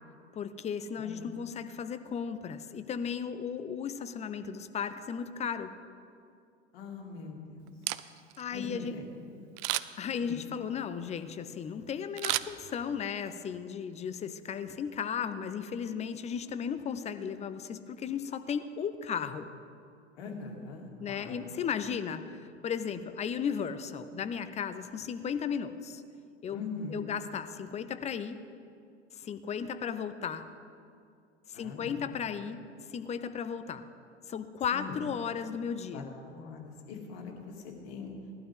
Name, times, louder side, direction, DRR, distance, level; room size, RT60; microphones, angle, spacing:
voice 1, 0.3-5.7 8.4-8.9 10.0-19.5 21.0-26.0 26.4-26.6 26.9-28.4 29.1-30.4 31.5-32.6 32.9-33.9 34.3-36.1, left 7 dB, 20° left, 11 dB, 0.6 m, -35 dB
voice 2, 6.7-7.7 8.5-9.0 10.2-10.4 20.2-21.5 26.5-27.1 31.5-32.5 34.7-35.0 35.9-38.2, left 4 dB, 55° left, 1 dB, 2.5 m, -42 dB
Camera, 7.7-8.4 9.6-10.1 12.2-13.1 13.5-13.6, right 17 dB, 35° right, 0.4 m, -33 dB
18.5 x 12.0 x 3.6 m, 2.4 s
figure-of-eight pair, 85°, 35 cm